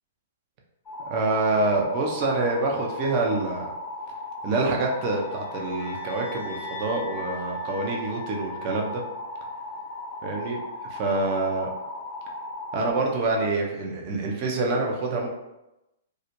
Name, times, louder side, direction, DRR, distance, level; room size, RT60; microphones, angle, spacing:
sound 1, 0.9-12.9, left 2 dB, 25° left, 0.5 m, -37 dB
voice 1, 1.1-3.7 4.4-9.0 10.2-10.6 10.9-11.7 12.7-15.3, right 2 dB, 40° right, 0 dB, 0.5 m, -26 dB
sound 2, 5.0-9.3, equal, 80° left, 0.7 m, -41 dB
2.4 x 2.1 x 2.9 m, 0.95 s
hypercardioid pair, 120°, 0 cm